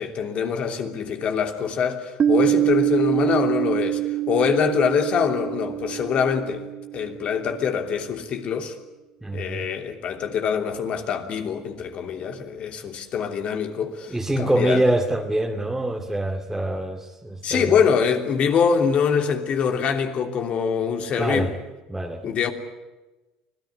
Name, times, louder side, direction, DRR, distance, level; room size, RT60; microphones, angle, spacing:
voice 1, 0.0-6.6 6.9-8.7 9.3-14.8 17.4-21.5 22.2-22.5, left 6 dB, 50° left, 3.1 m, -24 dB
Piano, 2.2-7.6, right 13 dB, 40° right, 1.5 m, -25 dB
voice 2, 9.2-9.6 14.1-17.8 21.2-21.5 21.9-22.2, right 1 dB, 10° right, 2.3 m, -24 dB
25.5 x 17.0 x 9.7 m
hypercardioid pair, 75°, 3 cm